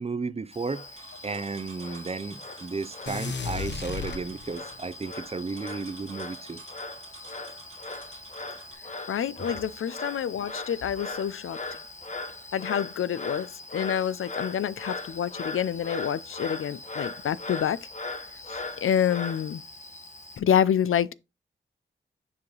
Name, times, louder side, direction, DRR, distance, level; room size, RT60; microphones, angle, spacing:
voice 1, 0.0-6.6 9.5-9.6, right 4 dB, 30° right, 0.5 m, -34 dB
Frog, 0.5-20.4, left 3 dB, 35° left, 1.0 m, -39 dB
sound 1, 1.0-8.7, right 4 dB, 85° right, 1.9 m, -51 dB
sound 2, 3.1-4.8, left 5 dB, 55° left, 0.8 m, -34 dB
voice 2, 9.1-11.6 12.5-17.8 18.5-19.6 20.4-21.1, left 9 dB, 85° left, 0.4 m, -27 dB
7.1 x 4.8 x 3.8 m
cardioid pair, 60°, 21 cm